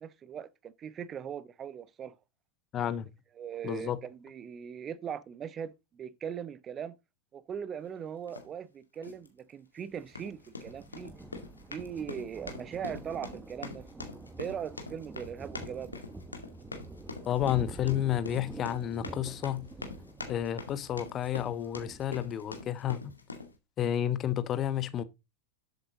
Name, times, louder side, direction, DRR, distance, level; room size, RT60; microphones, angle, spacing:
voice 1, 0.0-2.1 3.4-7.0 7.3-11.1 11.7-13.9 14.4-16.0, right 8 dB, 25° right, 0.7 m, -40 dB
voice 2, 2.7-3.1 3.6-4.0 17.3-19.7 20.3-23.1 23.8-25.0, left 10 dB, 30° left, 1.0 m, -31 dB
sound 1, 8.3-8.5 9.0-9.3 10.0-23.5, left 3 dB, 80° left, 2.2 m, -44 dB
Thunder, 9.9-22.2, right 2 dB, 10° right, 1.1 m, -48 dB
12.5 x 7.8 x 3.9 m
figure-of-eight pair, 90°, 0 cm